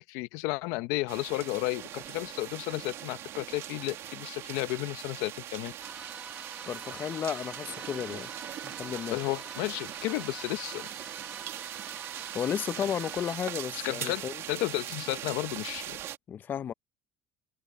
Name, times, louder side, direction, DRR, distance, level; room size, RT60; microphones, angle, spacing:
voice 1, 0.0-5.7 9.1-10.9 12.8-12.9 13.7-14.2 14.5-16.0, left 20 dB, 80° left, 0.8 m, -33 dB
sound 1, 1.1-16.2, right 12 dB, 55° right, 2.2 m, -41 dB
sound 2, 5.8-13.4, right 2 dB, 15° right, 1.6 m, -46 dB
voice 2, 6.7-8.3 8.6-9.2 12.3-14.4 16.3-16.7, left 9 dB, 35° left, 0.6 m, -33 dB
cardioid pair, 125°, 5 cm